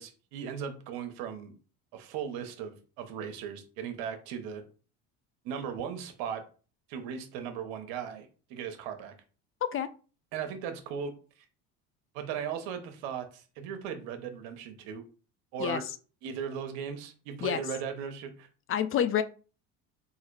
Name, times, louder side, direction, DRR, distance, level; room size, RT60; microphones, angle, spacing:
voice 1, 0.0-1.6 1.9-4.6 5.4-6.4 6.9-9.1 10.3-11.1 12.1-15.0 15.5-15.8 16.2-18.5, right 7 dB, 80° right, 1.0 m, -37 dB
voice 2, 18.7-19.2, left 9 dB, 40° left, 0.4 m, -28 dB
3.9 x 2.6 x 4.6 m
supercardioid pair, 100°, 36 cm